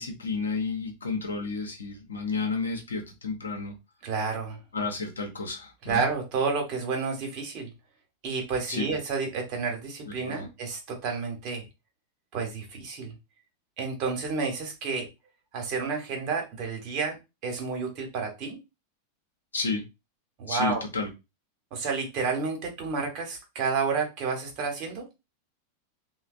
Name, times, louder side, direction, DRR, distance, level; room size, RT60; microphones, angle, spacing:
voice 1, 0.0-3.7 4.7-6.0 8.7-8.9 10.1-10.5 19.5-19.8 20.5-21.1, left 4 dB, 75° left, 3 dB, 0.7 m, -31 dB
voice 2, 4.0-4.6 5.8-7.7 8.2-11.6 12.3-13.1 13.8-15.1 15.5-17.2 17.4-18.6 20.4-20.8 21.7-25.0, right 5 dB, 40° right, 2 dB, 1.0 m, -30 dB
3.2 x 2.2 x 2.4 m, 0.25 s
figure-of-eight pair, 90°, 0 cm